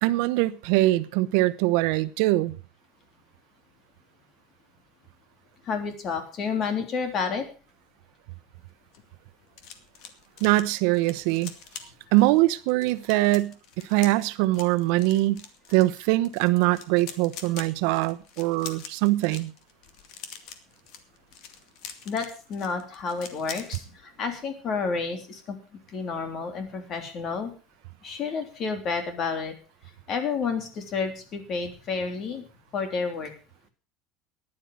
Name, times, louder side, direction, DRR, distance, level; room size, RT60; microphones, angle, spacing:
voice 1, 0.0-2.6 10.4-11.5 12.1-15.4 15.7-19.5, right 18 dB, 75° right, 1.0 m, -23 dB
voice 2, 5.6-7.4 22.0-25.6 25.9-27.5 28.0-29.5 30.1-32.4 32.7-33.3, left 5 dB, 40° left, 3.3 m, -30 dB
sound 1, 8.6-23.8 24.2-24.4 24.7-25.0, left 7 dB, 60° left, 2.2 m, -45 dB
15.0 x 11.0 x 5.4 m
cardioid pair, 145°, 0 cm